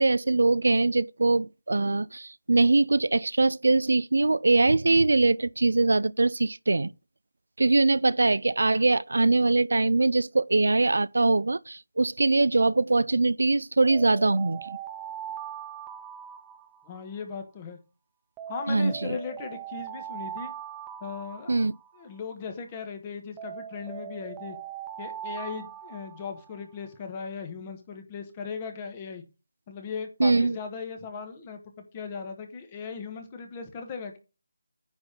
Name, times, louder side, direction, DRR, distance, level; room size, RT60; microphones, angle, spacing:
voice 1, 0.0-6.9 7.6-14.8 18.7-19.2 21.5-21.7 30.2-30.6, right 3 dB, 75° right, 0.4 m, -22 dB
Alarm, 13.9-17.2 18.4-22.2 23.4-26.6, right 10 dB, 5° right, 0.3 m, -40 dB
voice 2, 16.9-17.8 18.5-20.5 21.0-21.5 22.0-24.6 25.0-29.2 29.7-31.6 31.9-34.2, left 5 dB, 15° left, 1.2 m, -37 dB
9.7 x 4.1 x 6.0 m
figure-of-eight pair, 175°, 0 cm